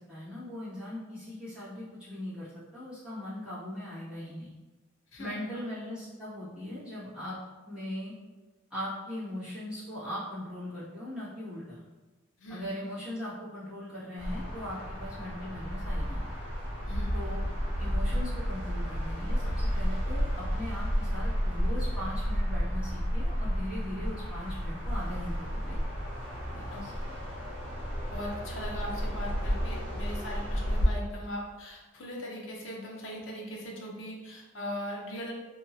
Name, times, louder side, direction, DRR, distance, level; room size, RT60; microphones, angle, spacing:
voice 1, 0.0-2.5 2.7-4.5 5.2-7.4 7.7-8.1 8.7-11.8 12.5-16.3 17.1-17.5 17.8-25.8 26.5-26.9, left 1 dB, 5° right, -14 dB, 1.3 m, -39 dB
sound 1, 14.2-30.9, equal, 55° right, 1.3 m, -31 dB
voice 2, 16.9-17.2 26.7-26.9 28.1-35.3, equal, 70° left, -2 dB, 0.7 m, -39 dB
2.8 x 2.8 x 2.5 m, 1.2 s
head